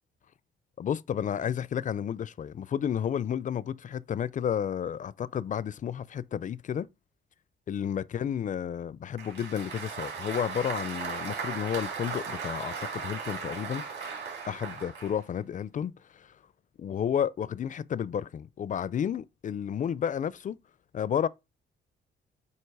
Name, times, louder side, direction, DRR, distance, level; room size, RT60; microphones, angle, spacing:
voice 1, 0.8-6.9 7.7-13.8 14.5-16.3 16.8-20.6 20.9-21.3, left 8 dB, 40° left, 0.4 m, -31 dB
Applause, 9.2-15.2, right 5 dB, 60° right, 3.4 m, -37 dB
7.9 x 2.8 x 4.7 m
cardioid pair, 90°, 20 cm